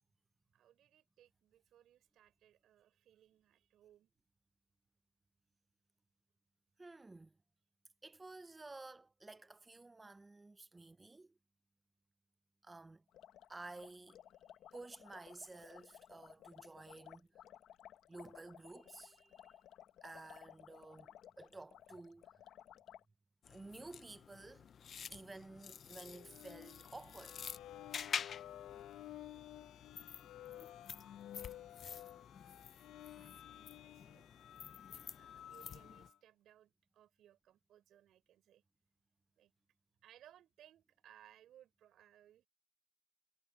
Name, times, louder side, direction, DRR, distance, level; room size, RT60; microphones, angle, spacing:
voice 1, 0.5-4.1 33.1-34.5 34.9-38.6 39.4-39.5 40.0-42.5, right 11 dB, 65° right, 6.4 m, -65 dB
voice 2, 6.8-7.4 8.0-11.4 12.6-13.0 13.5-14.2 14.7-17.3 18.1-19.6 20.0-22.3 23.5-24.7 25.1-27.4 35.3-35.4, right 2 dB, 15° right, 0.5 m, -53 dB
sound 1, 13.1-23.0, left 10 dB, 65° left, 1.1 m, -58 dB
sound 2, 23.4-36.1, left 7 dB, 40° left, 0.4 m, -49 dB
sound 3, 25.9-36.1, left 12 dB, 85° left, 1.2 m, -53 dB
cardioid pair, 170°, 0 cm